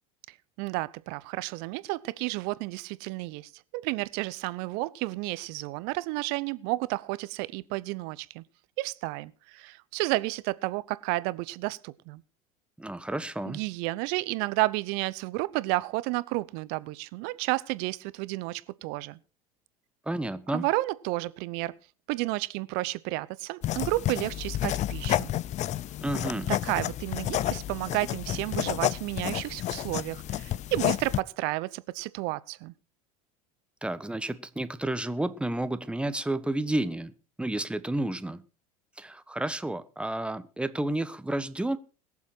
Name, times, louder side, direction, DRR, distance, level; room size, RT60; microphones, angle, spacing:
voice 1, 0.6-8.4 8.8-12.2 13.5-19.2 20.5-21.8 22.1-25.3 26.5-32.7, right 21 dB, 60° right, 0.8 m, -31 dB
voice 2, 12.8-13.6 20.1-20.7 26.0-26.5 33.8-37.1 37.4-38.4 39.0-41.8, right 1 dB, 5° right, 1.2 m, -31 dB
sound 1, 23.6-31.2, left 13 dB, 40° left, 0.5 m, -30 dB
21.5 x 7.3 x 4.5 m
hypercardioid pair, 80°, 18 cm